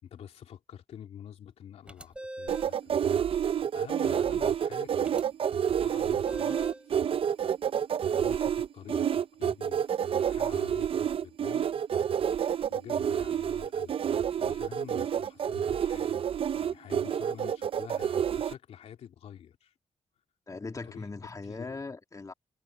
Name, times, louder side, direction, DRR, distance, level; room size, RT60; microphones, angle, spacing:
voice 1, 0.0-3.1 3.7-5.1 5.8-7.0 8.1-11.7 12.7-14.0 14.4-19.7 20.9-21.1 21.5-21.8, left 9 dB, 80° left, 3.1 m, -48 dB
sound 1, 1.9-2.8 5.0-5.2 6.3-6.9, right 1 dB, 10° right, 3.3 m, -41 dB
sound 2, 2.5-18.5, right 8 dB, 60° right, 0.6 m, -29 dB
voice 2, 20.5-22.3, left 3 dB, 30° left, 2.2 m, -39 dB
cardioid pair, 75°, 11 cm